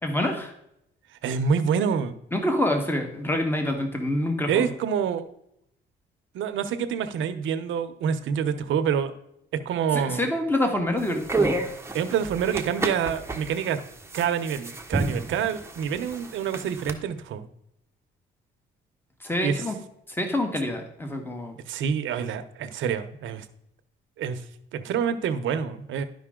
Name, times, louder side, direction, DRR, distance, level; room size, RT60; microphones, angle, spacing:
voice 1, 0.0-0.5 2.3-4.7 9.9-11.6 19.2-19.8 20.1-21.6, left 1 dB, 10° left, 4 dB, 1.6 m, -26 dB
voice 2, 1.2-2.2 4.5-5.3 6.3-9.1 9.6-10.3 11.9-13.8 14.1-17.5 19.4-19.6 21.7-23.5 24.2-24.4 24.7-26.0, right 7 dB, 75° right, 9 dB, 0.8 m, -27 dB
sound 1, 11.0-16.9, right 3 dB, 15° right, 1.0 m, -31 dB
11.0 x 5.4 x 3.7 m, 0.77 s
cardioid pair, 90°, 20 cm